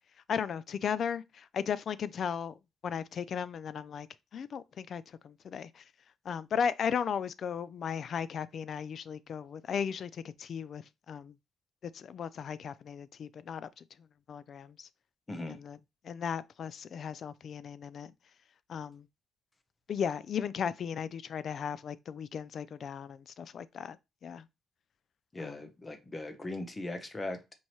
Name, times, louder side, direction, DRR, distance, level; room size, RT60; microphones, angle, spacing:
voice 1, 0.3-4.1 4.3-5.9 6.2-11.3 11.8-14.9 15.5-15.8 16.0-18.1 18.7-19.1 19.9-24.0 24.2-24.5 25.4-25.7, left 7 dB, 60° left, 0.3 m, -36 dB
voice 2, 15.3-15.6 25.3-27.5, left 2 dB, 25° left, 0.8 m, -39 dB
4.5 x 2.7 x 2.9 m
cardioid pair, 90°, 0 cm